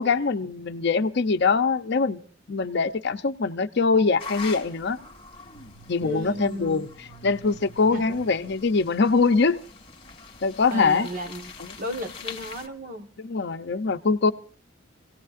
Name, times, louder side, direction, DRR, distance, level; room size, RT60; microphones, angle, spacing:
voice 1, 0.0-5.0 5.9-6.9 7.2-9.6 10.4-11.1 11.6-11.7 13.2-14.3, left 4 dB, 55° left, 0.6 m, -23 dB
sound 1, 4.2-12.7, left 4 dB, 25° left, 2.1 m, -43 dB
sound 2, 5.4-9.5, right 5 dB, 75° right, 4.0 m, -51 dB
voice 2, 6.0-6.9 7.9-8.2 10.7-13.1, equal, 45° right, 1.4 m, -34 dB
27.5 x 17.5 x 2.5 m
head